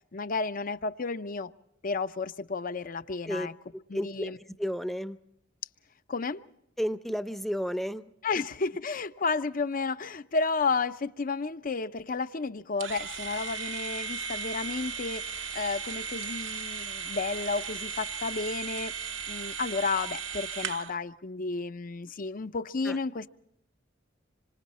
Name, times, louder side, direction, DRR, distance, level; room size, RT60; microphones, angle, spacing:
voice 1, 0.1-1.5 1.8-3.5 3.9-4.4 6.1-6.4 8.2-18.9 19.3-23.3, left 4 dB, 45° left, 0.7 m, -32 dB
voice 2, 3.9-4.3 4.6-5.2 6.8-8.1 22.8-23.0, equal, ahead, 0.7 m, -32 dB
sound 1, 12.8-21.0, right 6 dB, 70° right, 1.0 m, -36 dB
26.0 x 25.0 x 4.2 m
head